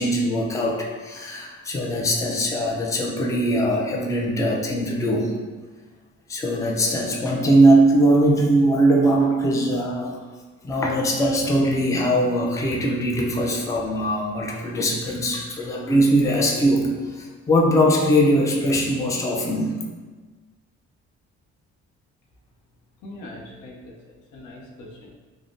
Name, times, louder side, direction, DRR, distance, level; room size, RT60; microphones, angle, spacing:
voice 1, 0.0-5.3 6.3-10.2 10.6-19.8, right 1 dB, 10° left, -1 dB, 0.4 m, -21 dB
voice 2, 23.0-25.1, left 1 dB, 85° left, -1 dB, 0.7 m, -42 dB
3.5 x 2.0 x 2.5 m, 1.4 s
cardioid pair, 90°, 30 cm